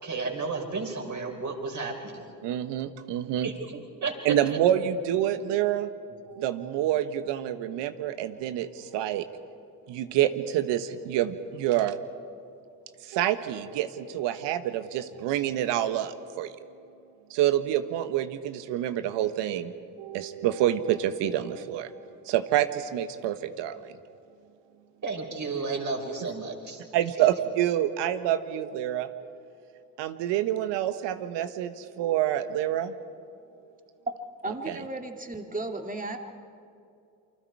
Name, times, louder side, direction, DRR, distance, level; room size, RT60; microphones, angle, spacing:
voice 1, 0.0-2.3 3.4-3.5 4.0-4.6 25.0-26.8 27.2-27.3, right 4 dB, 40° right, 1 dB, 5.5 m, -32 dB
voice 2, 2.4-3.5 4.2-5.9 6.3-9.3 9.9-12.0 13.0-16.5 17.3-19.7 20.0-21.9 22.2-23.9 26.9-29.1 30.0-32.9 34.7-34.8, right 12 dB, 70° right, 11 dB, 1.3 m, -27 dB
voice 3, 34.4-36.2, right 2 dB, 20° right, 4 dB, 2.5 m, -34 dB
28.5 x 25.0 x 4.8 m, 2.5 s
hypercardioid pair, 55°, 44 cm